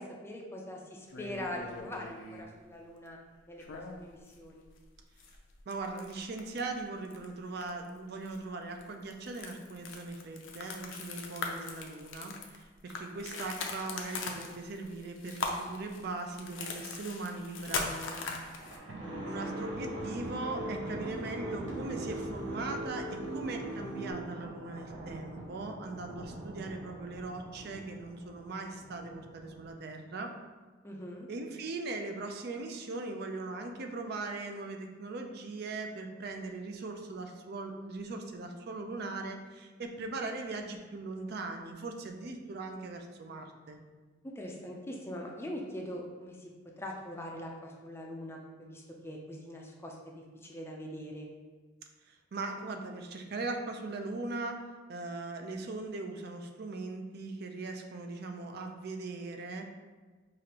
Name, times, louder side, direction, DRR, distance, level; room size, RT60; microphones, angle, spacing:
voice 1, 0.0-3.2 3.5-4.7 13.1-13.4 19.3-19.6 30.8-31.3 44.2-46.5 46.8-51.3, left 1 dB, 15° left, 0 dB, 0.4 m, -42 dB
sound 1, 1.1-2.5 3.6-4.3 4.6-4.8 5.2-6.7 7.0-7.3 7.6-7.9 8.3-8.4 8.8-18.8, left 4 dB, 75° left, 0.5 m, -40 dB
voice 2, 5.7-18.2 19.2-30.3 31.3-43.8 52.1-54.6 54.9-59.7, right 3 dB, 55° right, 5 dB, 0.4 m, -40 dB
Thunder, 17.9-29.7, right 1 dB, 80° right, 0.7 m, -45 dB
sound 2, 19.0-24.1, right 1 dB, 20° right, 1.1 m, -39 dB
4.9 x 2.5 x 2.9 m, 1.4 s
head